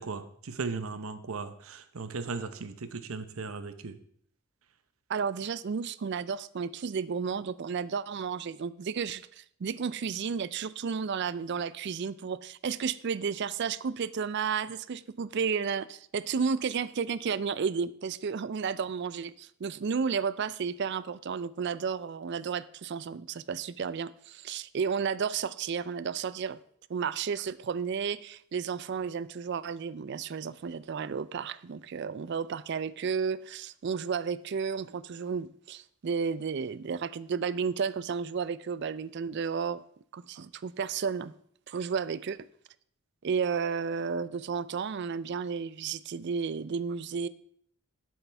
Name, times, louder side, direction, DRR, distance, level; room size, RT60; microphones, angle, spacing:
voice 1, 0.0-3.9, right 4 dB, 80° right, 0.8 m, -37 dB
voice 2, 5.1-26.6 26.9-39.8 40.1-41.3 41.7-42.5 43.2-47.3, right 6 dB, 55° right, 0.4 m, -32 dB
11.0 x 7.6 x 3.4 m
head